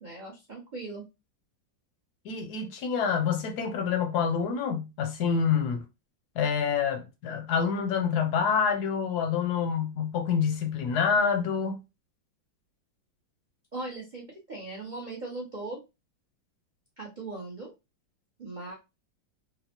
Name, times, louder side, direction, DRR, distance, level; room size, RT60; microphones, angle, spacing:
voice 1, 0.0-1.0 13.7-15.8 17.0-17.7 18.4-18.7, right 2 dB, 80° right, 0.4 m, -39 dB
voice 2, 2.2-5.8 6.4-11.8, left 6 dB, 75° left, 1.0 m, -27 dB
4.0 x 2.0 x 2.8 m
omnidirectional pair, 2.1 m